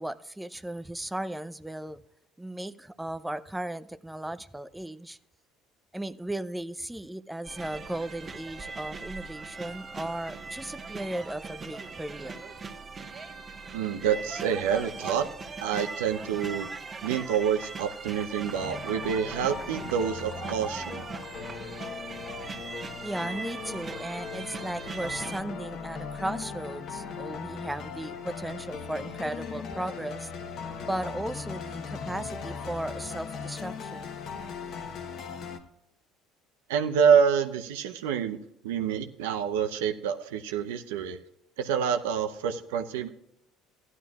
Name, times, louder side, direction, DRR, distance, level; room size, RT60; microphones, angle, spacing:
voice 1, 0.0-2.0 2.4-5.2 5.9-12.4 23.0-30.3 30.8-34.2, right 1 dB, 5° right, 0.5 m, -36 dB
sound 1, 7.4-25.4, right 4 dB, 30° right, 1.4 m, -40 dB
voice 2, 13.7-15.2 15.6-16.7 17.0-21.0 36.7-38.4 38.6-41.2 41.6-43.1, right 7 dB, 80° right, 0.8 m, -27 dB
sound 2, 18.5-35.6, left 5 dB, 55° left, 1.2 m, -39 dB
15.5 x 11.0 x 2.4 m
hypercardioid pair, 70°, 0 cm